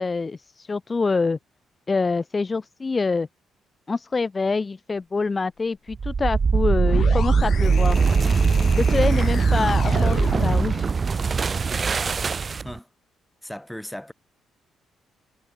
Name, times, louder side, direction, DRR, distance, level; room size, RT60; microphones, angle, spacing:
voice 1, 0.0-1.4 1.9-3.3 3.9-8.0 8.8-10.9, left 4 dB, 30° left, 0.5 m, -25 dB
sound 1, 5.9-12.8, right 5 dB, 40° right, 0.3 m, -21 dB
sound 2, 6.7-10.9, left 8 dB, 60° left, 1.1 m, -33 dB
voice 2, 12.6-12.9 13.4-14.1, left 1 dB, 5° left, 1.7 m, -37 dB
cardioid pair, 90°, 0 cm